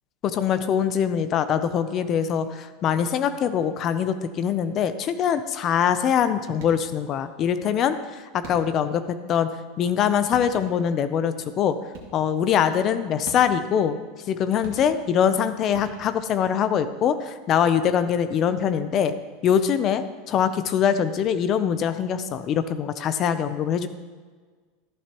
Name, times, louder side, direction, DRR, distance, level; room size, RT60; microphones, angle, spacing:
voice 1, 0.2-9.5 9.8-11.8 12.1-14.0 14.3-19.1 19.4-23.9, left 8 dB, 25° left, 11 dB, 0.5 m, -23 dB
sound 1, 6.5-7.0 8.4-9.0 10.0-10.1 10.3-11.0 11.9-12.4 13.2-13.8 14.6-15.3 15.7-16.4, right 4 dB, 60° right, 2.2 m, -43 dB
13.5 x 11.0 x 3.0 m, 1.5 s
supercardioid pair, 175°, 0 cm